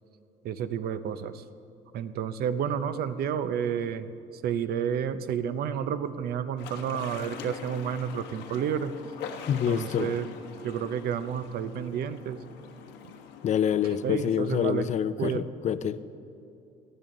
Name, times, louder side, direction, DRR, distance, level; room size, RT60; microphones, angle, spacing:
voice 1, 0.4-1.4 1.9-4.1 4.4-8.9 9.7-12.4 13.9-14.9 15.2-15.5, right 8 dB, 65° right, 12 dB, 0.7 m, -30 dB
sound 1, 6.6-14.3, left 7 dB, 85° left, 1.3 m, -43 dB
voice 2, 9.5-10.1 13.4-16.1, left 9 dB, 45° left, 14 dB, 0.5 m, -27 dB
18.5 x 12.0 x 3.9 m, 2.8 s
cardioid pair, 110°, 17 cm